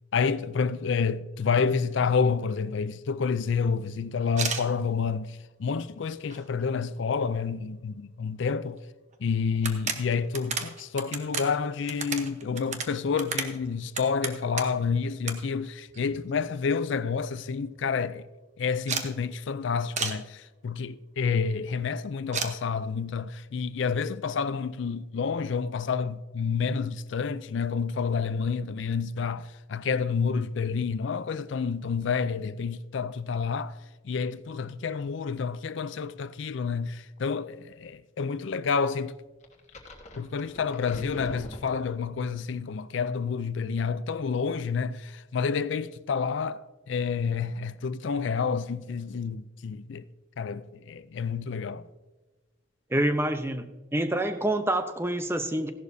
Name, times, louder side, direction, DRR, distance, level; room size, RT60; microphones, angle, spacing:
voice 1, 0.1-8.9 9.2-18.3 18.6-33.8 34.0-39.1 40.2-50.1 50.4-51.9, left 5 dB, 65° left, 0.4 m, -29 dB
sound 1, 4.3-4.7 5.4-5.5 5.9-6.6 7.0-7.1 7.3-7.4 8.8-8.9 9.1-9.2 9.6-14.9 15.3-15.4 15.6-16.4 16.8-16.9 17.1-17.2 17.5-17.8 18.9-19.1 20.0-20.2 22.3-22.5, right 5 dB, 35° right, 1.0 m, -33 dB
sound 2, 39.4-42.3, left 1 dB, 35° left, 1.4 m, -44 dB
voice 2, 52.9-55.7, right 1 dB, 10° right, 0.7 m, -27 dB
15.5 x 11.5 x 2.7 m
head